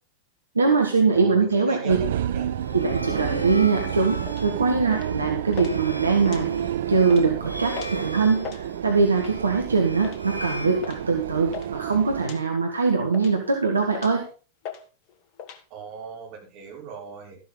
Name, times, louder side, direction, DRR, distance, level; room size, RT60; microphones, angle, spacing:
voice 1, 0.6-2.0 2.7-6.5 6.9-14.3, right 4 dB, 75° right, 3 dB, 1.7 m, -22 dB
voice 2, 1.1-2.5 15.7-17.4, right 6 dB, 40° right, -1 dB, 5.8 m, -39 dB
sound 1, 1.9-12.3, right 11 dB, 60° right, 0.5 m, -31 dB
sound 2, 2.4-11.5, equal, 85° left, 1.9 m, -38 dB
sound 3, 4.2-4.5 4.9-5.2 5.5-5.7 6.1-6.7 7.0-7.3 7.7-8.0 8.3-8.6 9.2-9.5 10.0-10.2 10.8-11.0 11.3-11.7 12.2-12.4 12.9-13.5 13.9-14.2 14.6-14.8 15.1-15.6, left 8 dB, 40° left, 1.8 m, -38 dB
13.0 x 11.0 x 3.9 m, 0.34 s
figure-of-eight pair, 90°, 0 cm